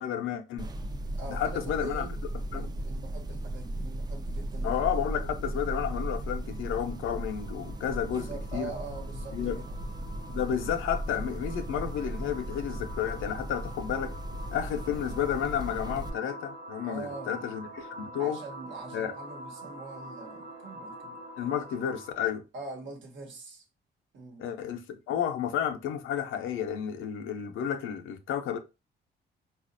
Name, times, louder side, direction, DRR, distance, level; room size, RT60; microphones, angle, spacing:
voice 1, 0.0-0.7 1.3-2.1 2.5-2.7 4.6-8.7 9.3-9.6 10.3-14.1 14.5-18.4 18.9-19.1 21.4-22.4 24.4-28.6, left 9 dB, 85° left, 0.6 m, -31 dB
sound 1, 0.6-16.1, right 1 dB, 20° right, 0.4 m, -36 dB
voice 2, 1.1-2.2 2.5-4.8 8.1-9.8 16.8-17.4 18.2-21.2 22.5-23.6 24.1-24.5, right 3 dB, 70° right, 1.1 m, -43 dB
sound 2, 5.7-22.3, right 1 dB, 40° right, 1.0 m, -46 dB
4.0 x 2.4 x 2.5 m
cardioid pair, 90°, 20 cm